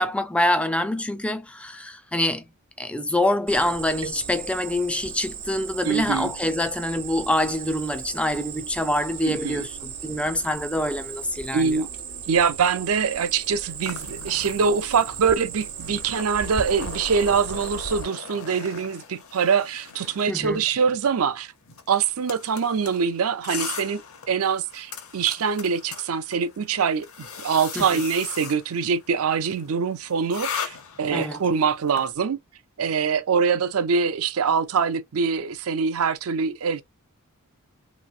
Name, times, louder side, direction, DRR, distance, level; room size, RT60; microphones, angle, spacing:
voice 1, 0.0-2.5 2.8-11.8 20.3-20.6 27.8-28.0 31.1-31.4, left 1 dB, 5° left, 0.3 m, -25 dB
Cricket, 3.5-18.0, right 7 dB, 85° right, 1.0 m, -37 dB
voice 2, 5.8-6.3 9.2-9.7 11.5-11.9 12.3-21.5 21.9-24.0 24.3-32.4 32.8-36.8, right 6 dB, 65° right, 0.5 m, -24 dB
sound 1, 13.8-32.1, left 7 dB, 65° left, 0.6 m, -39 dB
3.3 x 3.0 x 2.4 m
head